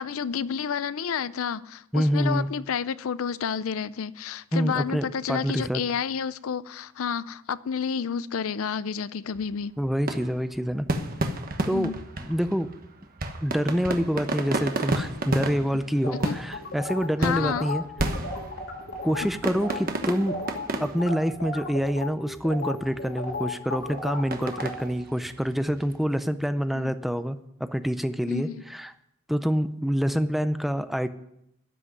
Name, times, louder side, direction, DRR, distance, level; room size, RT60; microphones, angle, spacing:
voice 1, 0.0-9.7 11.7-12.0 16.1-16.4 17.2-17.7 26.7-26.9 28.3-28.6, left 6 dB, 75° left, 0.5 m, -30 dB
voice 2, 1.9-2.5 4.5-5.8 9.8-10.9 11.7-11.9 12.2-12.7 13.4-17.8 19.0-20.4 20.8-28.9 29.3-31.1, equal, ahead, 0.5 m, -26 dB
sound 1, 9.3-26.0, right 2 dB, 45° right, 1.2 m, -33 dB
sound 2, 16.0-19.3 19.6-19.8 20.1-24.9, left 2 dB, 60° left, 2.4 m, -34 dB
12.5 x 6.2 x 9.4 m
head